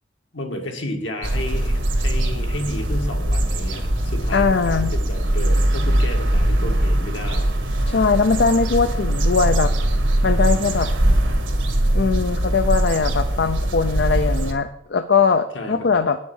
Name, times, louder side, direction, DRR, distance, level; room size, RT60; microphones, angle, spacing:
voice 1, 0.3-7.5 15.5-15.7, left 1 dB, 75° left, 3 dB, 1.8 m, -32 dB
sound 1, 1.2-14.5, right 1 dB, 80° right, 1.7 m, -21 dB
voice 2, 4.3-4.9 7.9-9.7 10.2-10.9 11.9-16.2, left 5 dB, 55° left, 9 dB, 0.5 m, -20 dB
9.8 x 6.5 x 7.2 m, 0.79 s
head